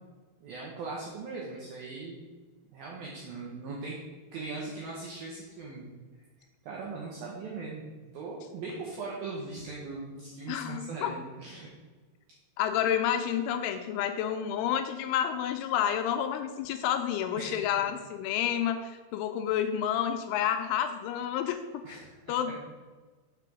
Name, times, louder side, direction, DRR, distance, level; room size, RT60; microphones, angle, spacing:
voice 1, 0.4-2.2 2.7-4.0 4.3-5.9 6.6-7.9 8.1-11.7 17.4-17.9 21.8-22.5, right 3 dB, 80° right, -3 dB, 2.1 m, -40 dB
voice 2, 10.5-11.1 12.6-21.6 21.9-22.0 22.3-22.6, left 9 dB, 85° left, 7 dB, 2.9 m, -29 dB
6.8 x 4.9 x 5.9 m, 1.4 s
omnidirectional pair, 5.7 m